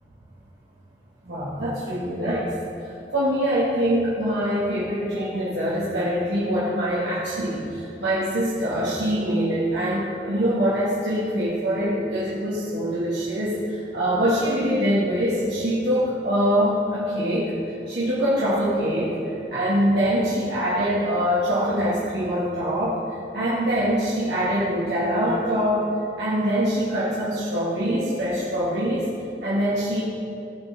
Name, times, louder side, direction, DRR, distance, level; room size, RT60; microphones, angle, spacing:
voice 1, 1.3-2.5 2.8-17.5 17.9-25.8 26.2-29.1 29.4-30.0, equal, 75° right, -9 dB, 2.1 m, -24 dB
17.0 x 6.2 x 3.7 m, 2.6 s
head